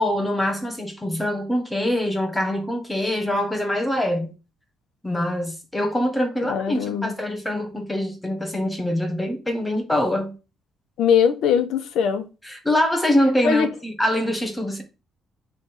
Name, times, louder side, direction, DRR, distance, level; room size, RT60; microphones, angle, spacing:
voice 1, 0.0-4.3 5.0-10.3 12.4-14.8, left 1 dB, 5° left, 1.2 m, -24 dB
voice 2, 6.4-7.1 11.0-12.3 13.4-13.7, left 7 dB, 70° left, 1.0 m, -21 dB
6.5 x 3.5 x 5.4 m
cardioid pair, 170°, 0 cm